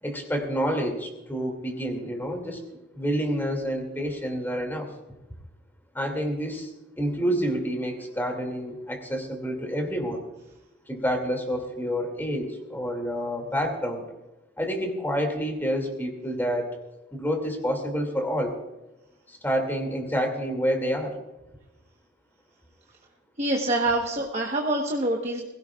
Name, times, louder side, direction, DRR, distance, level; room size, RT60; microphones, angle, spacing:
voice 1, 0.0-2.6 2.9-4.9 5.9-6.7 7.0-10.2 10.9-14.0 14.6-16.8 17.1-18.5 19.3-21.2, equal, 10° left, 3 dB, 2.5 m, -28 dB
voice 2, 23.4-25.5, right 1 dB, 35° right, 1 dB, 1.2 m, -26 dB
21.5 x 16.5 x 2.4 m, 0.99 s
head